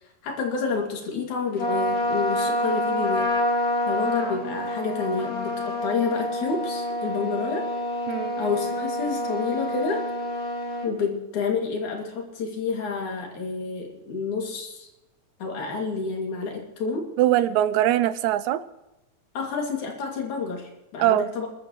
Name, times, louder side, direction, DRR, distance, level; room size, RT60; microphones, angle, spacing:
voice 1, 0.2-3.3 3.9-7.7 8.4-10.0 10.8-14.9 15.4-17.1 19.3-21.5, left 5 dB, 85° left, 0 dB, 4.0 m, -29 dB
Trumpet, 1.6-10.9, left 1 dB, 30° left, 2.6 m, -27 dB
voice 2, 8.1-8.4 17.2-18.7 21.0-21.3, right 13 dB, 90° right, 14 dB, 2.1 m, -22 dB
27.5 x 13.0 x 3.2 m, 0.97 s
omnidirectional pair, 3.3 m